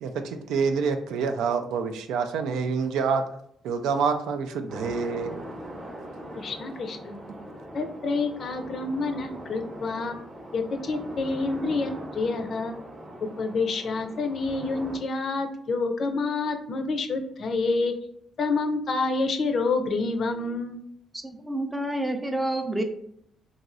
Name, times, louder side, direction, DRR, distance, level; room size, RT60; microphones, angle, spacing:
voice 1, 0.0-3.2 3.6-5.4, right 5 dB, 85° right, 7 dB, 0.3 m, -27 dB
sound 1, 4.7-15.0, equal, 35° right, 0.8 m, -41 dB
voice 2, 6.3-7.2 7.7-10.2 10.5-12.7 13.4-17.9 18.4-20.8, left 3 dB, 55° left, 6 dB, 0.4 m, -28 dB
voice 3, 21.2-22.8, right 1 dB, 10° right, 5 dB, 0.4 m, -28 dB
3.0 x 2.6 x 2.6 m, 0.70 s
cardioid pair, 90°, 0 cm